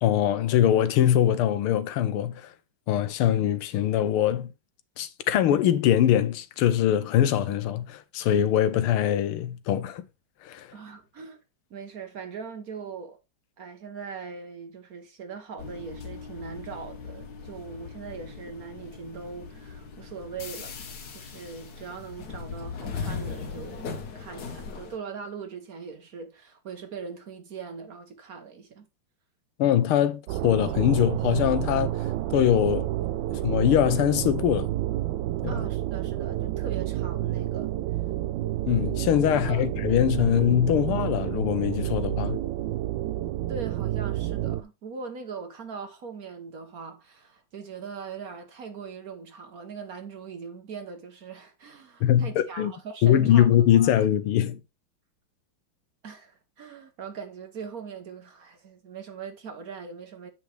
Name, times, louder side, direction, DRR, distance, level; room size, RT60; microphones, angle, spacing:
voice 1, 0.0-2.5 2.9-4.5 5.0-10.1 10.4-10.7 29.6-32.9 33.3-34.7 35.4-35.6 38.7-42.4 52.0-52.7 53.0-54.6, left 11 dB, 90° left, 1.7 m, -23 dB
voice 2, 10.7-11.4 11.7-13.2 13.6-20.8 21.1-28.9 35.5-37.7 39.4-39.6 43.5-53.5 53.7-54.0 56.0-60.3, right 5 dB, 55° right, 1.2 m, -40 dB
sound 1, 15.6-25.0, left 5 dB, 55° left, 1.5 m, -39 dB
sound 2, 30.3-44.6, right 14 dB, 75° right, 1.1 m, -29 dB
8.6 x 5.7 x 3.3 m
omnidirectional pair, 2.3 m